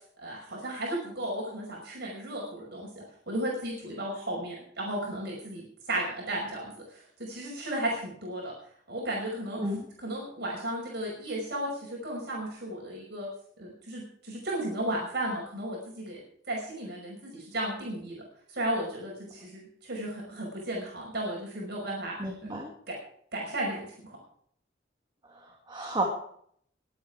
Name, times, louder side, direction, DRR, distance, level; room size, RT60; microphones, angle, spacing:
voice 1, 0.2-8.5 8.9-9.6 10.0-13.3 13.6-18.2 18.5-22.3 22.9-23.0 23.3-24.2, right 1 dB, 60° right, -2 dB, 5.8 m, -34 dB
voice 2, 22.2-22.7 25.3-26.0, right 1 dB, 25° right, 1 dB, 2.1 m, -32 dB
23.0 x 8.8 x 4.9 m, 0.64 s
head